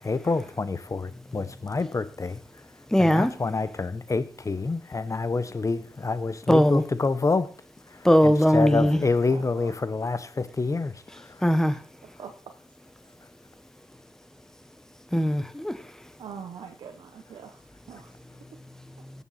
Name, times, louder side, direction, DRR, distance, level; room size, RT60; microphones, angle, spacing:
voice 1, 0.0-2.4 3.0-7.5 7.9-11.4, left 3 dB, 40° left, 1.0 m, -28 dB
voice 2, 2.9-3.3 6.5-6.8 8.0-9.0 11.4-11.8 15.1-15.8, equal, 5° left, 1.2 m, -20 dB
voice 3, 9.3-9.7 12.2-12.3 16.2-17.6 17.9-18.1, right 7 dB, 85° right, 1.0 m, -42 dB
17.0 x 7.1 x 4.3 m
cardioid pair, 45°, 8 cm